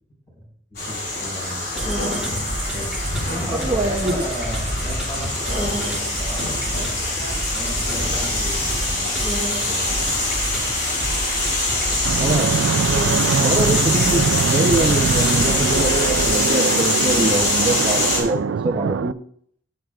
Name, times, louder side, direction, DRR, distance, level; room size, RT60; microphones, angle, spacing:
voice 1, 0.4-1.9 2.7-6.5 7.5-10.2, equal, 15° left, -3 dB, 4.8 m, -35 dB
sound 1, 0.7-18.2, left 2 dB, 55° left, 3.9 m, -24 dB
sound 2, 1.8-16.6, right 1 dB, 5° right, 1.8 m, -29 dB
voice 2, 3.5-4.2 12.2-12.5 13.4-19.2, right 1 dB, 25° right, -1 dB, 0.8 m, -24 dB
Fixed-wing aircraft airplane, 12.0-19.1, right 6 dB, 75° right, 0.4 m, -23 dB
15.0 x 8.2 x 2.4 m, 0.63 s
head